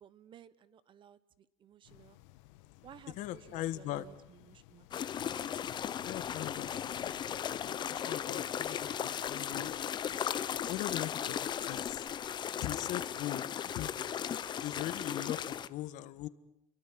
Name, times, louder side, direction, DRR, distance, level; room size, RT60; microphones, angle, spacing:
voice 1, 0.0-2.2 2.8-4.9, right 9 dB, 35° right, 17 dB, 1.1 m, -56 dB
sound 1, 1.8-7.4, left 17 dB, 85° left, 1.4 m, -58 dB
voice 2, 3.2-4.0 6.0-7.1 7.5-9.8 10.7-12.1 12.6-13.9 14.6-16.3, left 15 dB, 55° left, 14 dB, 1.5 m, -40 dB
sound 2, 4.9-15.7, left 9 dB, 30° left, 0.9 m, -36 dB
29.0 x 23.0 x 7.6 m, 0.91 s
cardioid pair, 145°, 15 cm